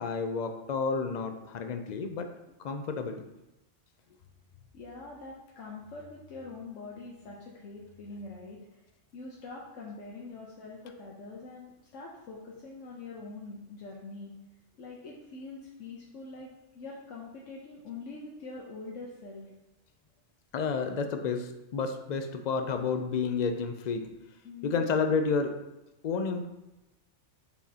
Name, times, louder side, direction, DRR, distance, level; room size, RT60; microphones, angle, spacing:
voice 1, 0.0-2.3 2.6-3.2 20.5-24.1 24.6-25.6 26.0-26.5, left 5 dB, 65° left, 6 dB, 0.4 m, -30 dB
voice 2, 4.7-8.8 9.1-14.3 14.8-19.5 24.4-24.8, left 3 dB, 90° left, -3 dB, 1.1 m, -44 dB
6.3 x 5.6 x 2.8 m, 0.99 s
omnidirectional pair, 1.3 m